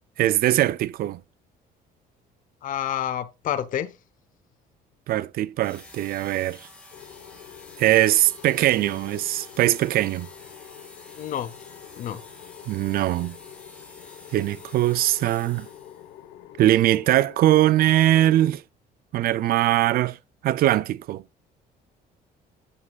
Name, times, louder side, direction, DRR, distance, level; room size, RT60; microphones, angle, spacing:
voice 1, 0.2-1.2 5.1-6.6 7.8-10.3 12.7-13.4 14.3-15.7 16.6-18.6 19.1-20.2 20.4-21.2, right 14 dB, 60° right, 0.5 m, -21 dB
voice 2, 2.6-3.9 11.2-11.5 12.0-12.2, left 10 dB, 55° left, 0.7 m, -28 dB
sound 1, 5.6-16.2, left 2 dB, 5° left, 3.9 m, -49 dB
sound 2, 6.9-18.5, left 11 dB, 85° left, 1.1 m, -46 dB
9.6 x 8.4 x 2.4 m
cardioid pair, 110°, 17 cm